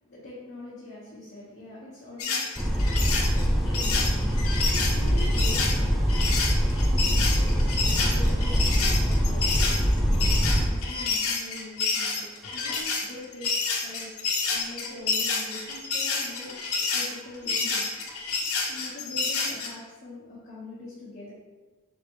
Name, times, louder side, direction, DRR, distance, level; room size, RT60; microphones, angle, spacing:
voice 1, 0.1-4.5 4.9-6.0 6.8-9.6 10.5-13.5 13.8-14.1 14.4-16.5 16.9-18.1 18.7-21.3, left 2 dB, 45° left, -10 dB, 1.2 m, -43 dB
sound 1, 2.2-19.7, left 4 dB, 85° left, 0.8 m, -28 dB
sound 2, 2.6-10.7, equal, ahead, 0.3 m, -23 dB
4.9 x 3.5 x 3.0 m, 1.3 s
head